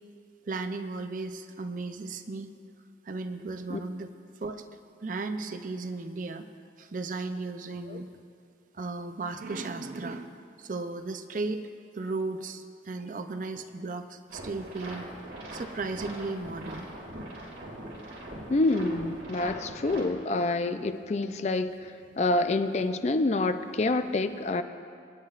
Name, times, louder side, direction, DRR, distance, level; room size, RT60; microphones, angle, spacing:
voice 1, 0.5-2.5 3.1-4.1 4.4-4.6 5.0-6.5 6.8-8.1 8.7-11.6 11.9-15.1 15.5-16.9, right 3 dB, 45° right, 8 dB, 0.5 m, -35 dB
sound 1, 14.3-20.0, right 1 dB, 90° right, 2.2 m, -42 dB
voice 2, 18.5-21.9 22.2-24.6, left 2 dB, 40° left, 9 dB, 0.4 m, -27 dB
24.5 x 9.7 x 2.4 m, 2.4 s
head